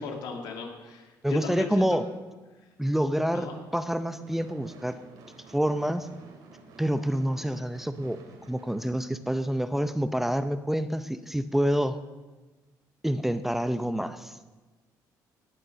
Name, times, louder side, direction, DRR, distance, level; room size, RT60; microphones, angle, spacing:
voice 1, 0.0-2.0 3.3-3.5, left 5 dB, 85° left, 2 dB, 2.3 m, -36 dB
voice 2, 1.2-2.0 2.8-5.0 5.5-6.1 6.8-8.2 8.5-12.0 13.0-14.4, equal, 5° right, 11 dB, 0.6 m, -27 dB
Gunshot gunfire / Fireworks, 3.5-9.8, right 3 dB, 85° right, 2.3 m, -52 dB
18.0 x 6.6 x 6.6 m, 1.2 s
cardioid pair, 110°, 7 cm